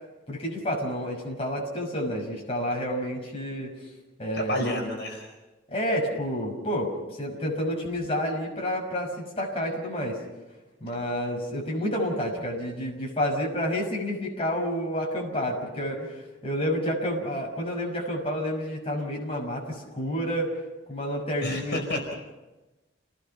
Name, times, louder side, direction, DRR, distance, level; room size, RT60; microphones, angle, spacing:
voice 1, 0.3-3.7 4.2-4.7 5.7-10.2 10.8-20.5 20.9-21.8, equal, 30° left, -1 dB, 5.9 m, -29 dB
voice 2, 4.3-5.3 21.4-22.1, left 1 dB, 60° left, 1 dB, 5.0 m, -30 dB
29.5 x 19.0 x 5.8 m, 1.1 s
head